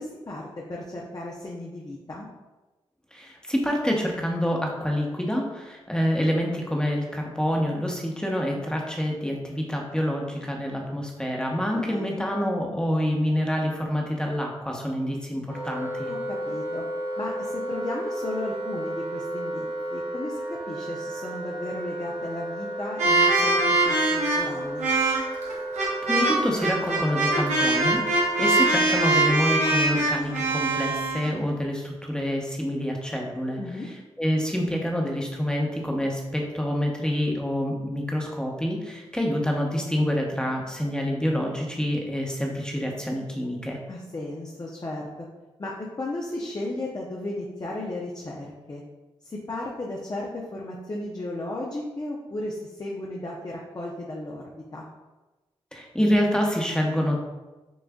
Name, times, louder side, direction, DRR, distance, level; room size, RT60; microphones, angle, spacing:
voice 1, 0.0-2.3 11.6-12.2 16.1-16.8 17.2-19.7 19.9-20.4 20.7-24.9 33.6-33.9 43.9-45.1 45.6-48.8 49.2-54.8, left 2 dB, 35° left, -3 dB, 0.7 m, -35 dB
voice 2, 3.1-16.1 26.1-43.8 55.7-57.2, equal, 5° left, 0 dB, 1.0 m, -27 dB
Wind instrument woodwind instrument, 15.5-28.8, right 1 dB, 50° right, 1.2 m, -33 dB
sound 1, 23.0-31.3, right 2 dB, 85° right, 0.9 m, -22 dB
6.9 x 2.5 x 2.4 m, 1.1 s
supercardioid pair, 40°, 11 cm